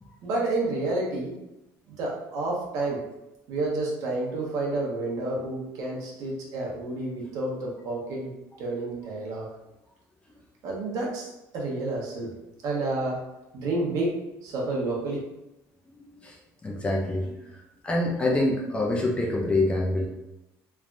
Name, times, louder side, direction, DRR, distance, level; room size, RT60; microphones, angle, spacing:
voice 1, 0.2-1.3 1.9-3.0 3.5-9.5 10.6-12.3 12.6-13.2 13.5-15.2, right 2 dB, 60° right, -3 dB, 0.9 m, -30 dB
voice 2, 16.6-17.4 17.8-20.1, left 2 dB, 15° left, -1 dB, 0.4 m, -25 dB
3.3 x 2.2 x 2.5 m, 0.92 s
cardioid pair, 150°, 7 cm